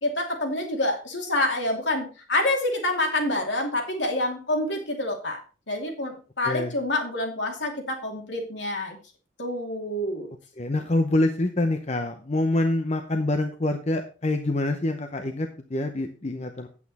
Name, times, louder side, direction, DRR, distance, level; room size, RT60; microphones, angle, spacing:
voice 1, 0.0-5.4 5.7-9.0 9.4-10.3, left 1 dB, 70° left, 2 dB, 2.6 m, -27 dB
voice 2, 10.6-16.7, left 2 dB, 35° left, 6 dB, 0.8 m, -26 dB
9.0 x 8.4 x 4.2 m, 0.34 s
head